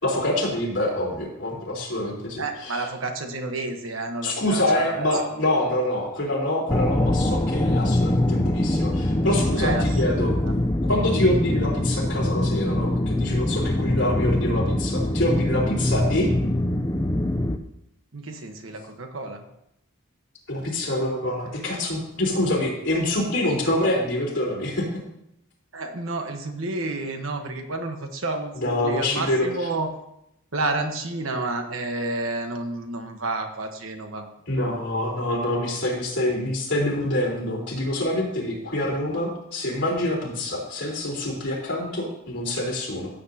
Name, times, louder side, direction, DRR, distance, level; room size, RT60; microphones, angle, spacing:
voice 1, 0.0-2.4 4.2-10.3 10.9-16.3 20.5-24.9 28.6-29.4 34.5-43.1, left 1 dB, 60° left, -4 dB, 3.9 m, -26 dB
voice 2, 2.4-5.5 9.5-10.5 18.1-19.5 25.7-29.9 30.5-34.8, right 2 dB, 70° right, 5 dB, 1.2 m, -30 dB
sound 1, 6.7-17.6, left 1 dB, 15° left, 0.5 m, -23 dB
15.5 x 8.0 x 2.8 m, 0.79 s
head